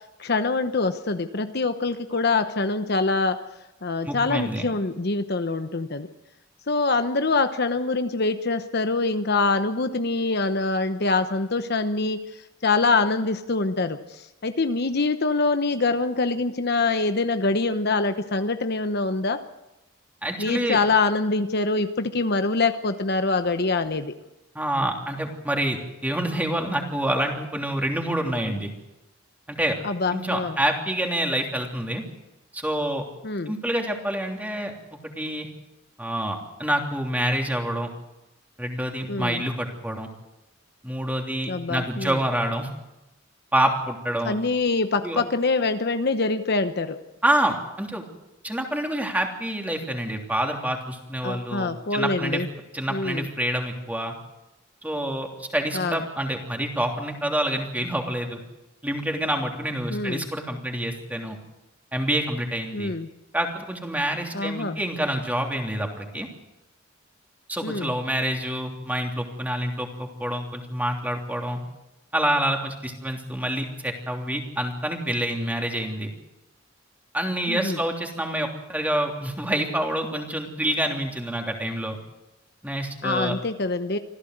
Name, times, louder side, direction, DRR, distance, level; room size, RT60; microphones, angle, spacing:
voice 1, 0.2-3.4 3.8-6.1 6.7-12.2 12.6-19.4 20.4-24.1 29.8-30.6 33.2-33.5 39.1-39.4 41.5-42.2 44.2-47.0 51.2-52.5 52.9-53.3 55.7-56.1 59.9-60.2 62.7-63.1 64.3-64.8 67.6-68.0 77.5-77.8 83.0-84.0, left 3 dB, 55° left, 9 dB, 1.0 m, -24 dB
voice 2, 4.0-4.6 20.2-20.8 24.5-28.7 29.5-29.8 30.1-32.0 32.5-33.0 33.5-34.7 35.2-35.5 36.0-37.9 38.6-40.1 40.8-42.7 43.5-44.3 45.0-45.2 47.2-48.0 48.4-52.4 52.7-54.1 54.8-58.4 58.8-61.4 61.9-62.9 63.3-66.3 67.5-71.6 72.1-76.1 77.1-82.0 82.6-83.3, right 1 dB, 10° right, 2 dB, 3.1 m, -27 dB
26.0 x 15.5 x 8.0 m, 0.97 s
head